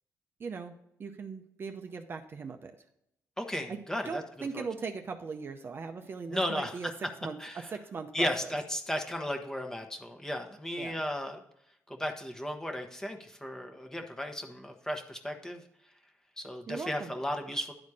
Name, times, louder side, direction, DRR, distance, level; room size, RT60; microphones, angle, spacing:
voice 1, 0.4-0.7 1.0-2.7 3.7-8.5 10.8-11.0 16.7-17.1, right 5 dB, 40° right, 5 dB, 0.7 m, -39 dB
voice 2, 3.4-4.2 4.5-4.6 6.3-6.7 7.4-7.7 8.1-11.4 11.9-15.6 16.4-17.7, equal, 10° left, 4 dB, 1.1 m, -35 dB
10.5 x 4.2 x 4.8 m, 0.77 s
cardioid pair, 125°, 6 cm